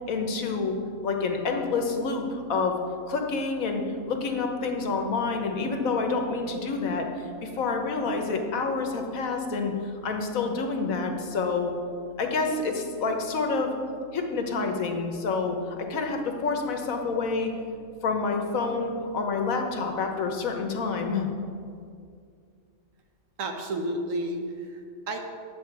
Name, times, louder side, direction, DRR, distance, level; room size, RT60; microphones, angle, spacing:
voice 1, 0.1-2.8 3.1-11.7 12.2-13.7 14.1-17.5 18.0-21.3, left 4 dB, 80° left, 4 dB, 1.4 m, -28 dB
voice 2, 23.4-25.2, right 1 dB, 70° right, 3 dB, 1.4 m, -31 dB
9.8 x 7.3 x 4.7 m, 2.3 s
omnidirectional pair, 1.4 m